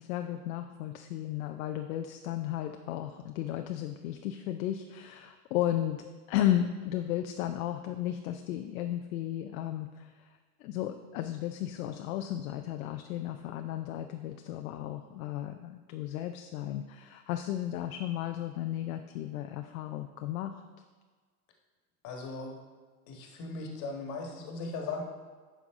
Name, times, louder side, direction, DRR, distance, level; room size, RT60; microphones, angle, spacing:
voice 1, 0.0-6.0 6.3-20.5, left 12 dB, 65° left, 6 dB, 0.6 m, -34 dB
voice 2, 22.0-22.5 23.1-25.0, left 3 dB, 40° left, 2 dB, 1.6 m, -38 dB
9.1 x 5.8 x 3.6 m, 1.5 s
supercardioid pair, 140°, 46 cm